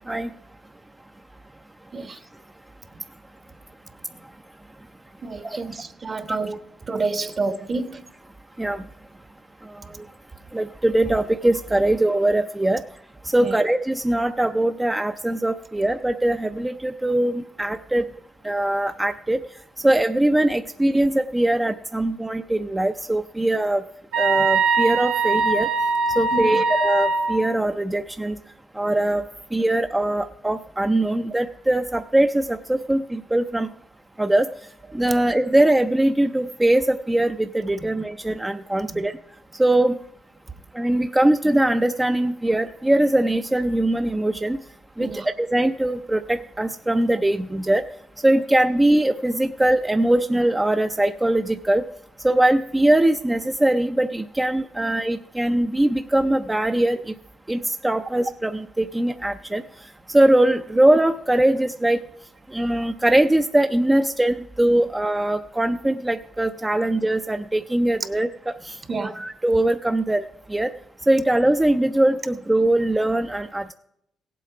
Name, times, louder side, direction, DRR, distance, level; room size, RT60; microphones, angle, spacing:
voice 1, 5.2-6.6 6.9-8.0 13.4-13.6 26.3-26.6 37.8-37.9 38.9-39.0 45.0-45.3 68.9-69.2, right 3 dB, 35° right, 1.0 m, -29 dB
voice 2, 9.6-10.1 10.5-12.8 13.2-18.0 18.4-19.4 19.8-23.8 24.2-25.7 26.2-28.4 28.8-29.2 29.5-33.7 34.2-34.5 34.9-39.1 39.6-40.0 40.7-44.6 45.0-47.8 48.2-51.8 52.2-57.1 57.5-59.6 60.1-62.0 62.5-70.2 70.5-70.7 71.1-73.7, right 1 dB, 10° right, 0.5 m, -21 dB
sound 1, 24.1-27.4, right 4 dB, 75° right, 2.0 m, -21 dB
16.5 x 7.7 x 4.8 m
cardioid pair, 90°, 0 cm